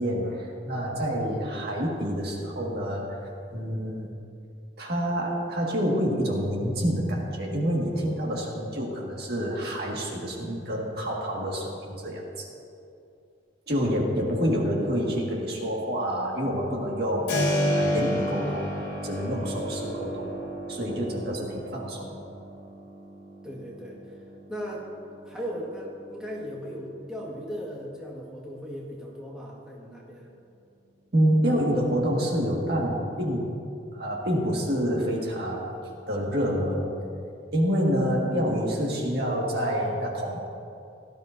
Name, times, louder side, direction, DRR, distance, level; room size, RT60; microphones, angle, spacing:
voice 1, 0.0-4.1 4.8-12.5 13.7-17.3 17.8-18.7 19.0-20.4 20.7-22.2 31.1-33.5 33.9-35.8 36.1-36.9 37.5-40.4, equal, 55° right, -2 dB, 1.8 m, -27 dB
Keyboard (musical), 17.3-28.0, equal, 60° left, 3.3 m, -32 dB
voice 2, 23.4-24.1 24.5-24.9 25.2-30.3, equal, 5° right, -5 dB, 1.6 m, -37 dB
18.0 x 12.5 x 2.7 m, 2.6 s
head